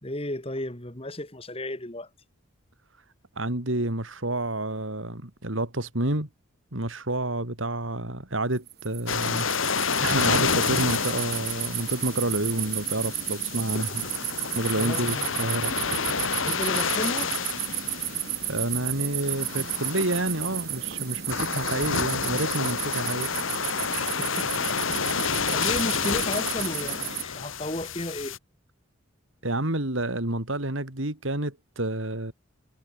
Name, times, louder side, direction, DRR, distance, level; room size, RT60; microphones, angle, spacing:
voice 1, 0.0-2.1 14.7-15.3 16.4-17.3 24.0-24.5 25.0-28.4, left 1 dB, 30° left, 2.7 m, -34 dB
voice 2, 3.4-6.3 6.7-9.5 10.0-14.0 14.6-15.7 18.5-23.3 29.4-32.3, right 1 dB, 75° right, 3.6 m, -29 dB
sound 1, 8.6-27.2, right 12 dB, 50° right, 3.2 m, -33 dB
sound 2, 9.1-28.4, left 6 dB, 80° left, 2.2 m, -29 dB
head